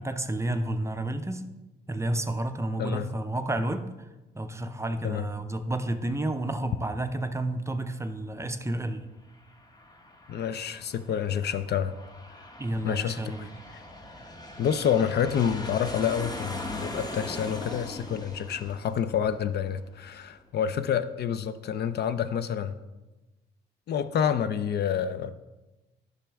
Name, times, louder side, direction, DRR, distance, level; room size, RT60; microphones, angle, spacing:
voice 1, 0.0-1.4 1.9-3.9 4.4-9.1 12.6-13.7, right 1 dB, 15° right, 8 dB, 0.5 m, -31 dB
Aircraft, 9.1-20.3, left 1 dB, 20° left, 1.0 m, -41 dB
voice 2, 10.3-11.9 12.8-13.8 14.6-22.8 23.9-25.4, left 8 dB, 55° left, 12 dB, 0.5 m, -28 dB
10.5 x 6.2 x 3.4 m, 1.1 s
cardioid pair, 90°, 20 cm